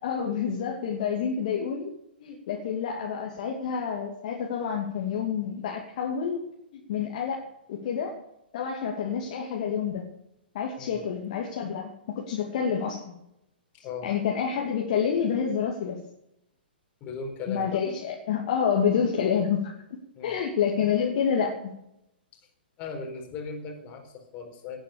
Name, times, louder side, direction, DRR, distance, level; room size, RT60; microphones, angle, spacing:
voice 1, 0.0-1.9 2.2-6.5 6.7-7.4 7.7-8.2 8.5-10.0 10.5-13.1 14.0-16.0 17.5-19.7 20.2-21.7, left 7 dB, 40° left, -1 dB, 2.6 m, -28 dB
voice 2, 17.0-17.8 20.1-20.4 22.8-24.8, left 4 dB, 25° left, 2 dB, 4.4 m, -38 dB
18.5 x 9.1 x 6.7 m, 0.81 s
figure-of-eight pair, 115°, 6 cm